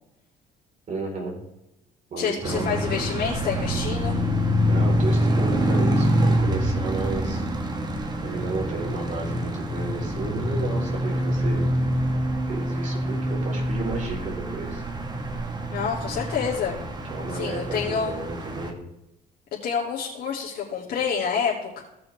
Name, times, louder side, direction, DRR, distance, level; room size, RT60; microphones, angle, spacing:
voice 1, 0.9-1.4 2.1-2.8 4.7-7.4 8.2-11.6 12.4-14.8 17.1-18.8, right 3 dB, 50° right, -1 dB, 4.2 m, -32 dB
voice 2, 2.2-4.2 15.7-16.8 17.3-18.1 19.6-21.8, left 6 dB, 70° left, -5 dB, 2.7 m, -28 dB
sound 1, 2.4-18.7, equal, 25° right, 1.6 m, -26 dB
17.5 x 6.2 x 3.5 m, 0.90 s
cardioid pair, 110°, 17 cm